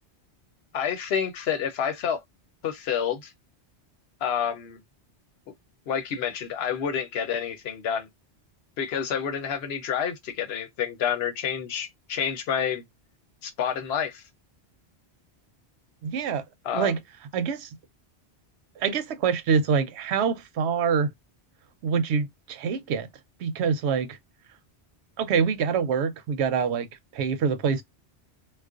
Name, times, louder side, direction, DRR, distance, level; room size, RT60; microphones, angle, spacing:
voice 1, 0.7-2.2 2.6-3.3 4.2-4.8 5.9-8.1 8.8-12.8 13.4-14.2 16.6-16.9, left 8 dB, 70° left, 0.9 m, -28 dB
voice 2, 16.0-16.4 16.7-17.0 17.3-17.7 18.8-21.1 21.8-23.1 23.4-24.2 25.2-26.9 27.1-27.8, right 6 dB, 85° right, 0.9 m, -25 dB
2.3 x 2.2 x 2.4 m
omnidirectional pair, 1.1 m